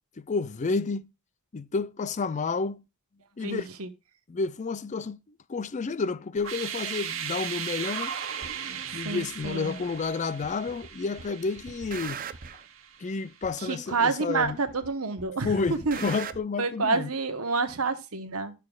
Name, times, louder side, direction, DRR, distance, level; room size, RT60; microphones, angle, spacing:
voice 1, 0.2-1.1 1.5-2.8 3.4-3.7 4.3-5.2 5.5-8.1 8.9-12.2 13.0-14.6 15.4-17.1, left 4 dB, 35° left, 0.4 m, -30 dB
voice 2, 3.4-3.9 9.0-9.8 13.6-16.0 16.6-18.5, right 4 dB, 85° right, 1.1 m, -28 dB
sound 1, 6.4-13.2, right 8 dB, 65° right, 1.1 m, -37 dB
sound 2, 8.4-8.5 9.4-9.5 10.4-10.9 11.2-12.6 13.4-13.5 14.4-14.9 15.2-16.4, right 7 dB, 40° right, 0.6 m, -40 dB
12.5 x 6.6 x 2.4 m
head